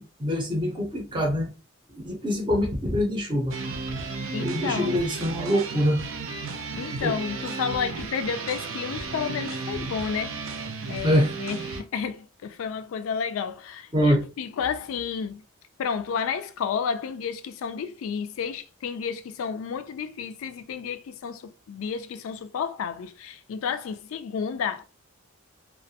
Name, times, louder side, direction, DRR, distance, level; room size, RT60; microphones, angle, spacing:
voice 1, 0.0-1.5 1.9-3.6 4.4-6.0 7.0-7.2 11.0-11.3 13.9-14.3, equal, 25° right, 0.6 m, -24 dB
sound 1, 3.5-11.8, right 4 dB, 65° right, 0.5 m, -34 dB
voice 2, 4.3-5.0 6.8-10.4 10.9-15.4 15.8-24.8, left 6 dB, 70° left, 0.3 m, -31 dB
2.4 x 2.2 x 2.7 m
head